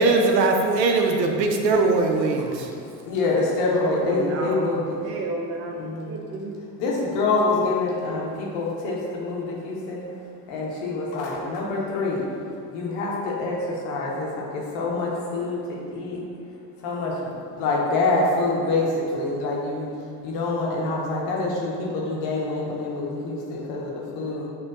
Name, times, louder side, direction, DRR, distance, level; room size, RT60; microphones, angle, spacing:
voice 1, 0.0-2.7, right 3 dB, 85° right, 3 dB, 0.6 m, -20 dB
voice 2, 1.5-1.9 3.0-5.0 5.8-6.2 6.8-10.0 10.5-12.3 12.7-16.2 16.8-17.2 17.6-19.9 20.2-24.5, left 3 dB, 60° left, -3 dB, 1.2 m, -26 dB
voice 3, 3.9-5.8 6.1-6.6, right 2 dB, 30° right, 1 dB, 0.4 m, -32 dB
6.8 x 2.7 x 2.5 m, 2.4 s
hypercardioid pair, 70°, 49 cm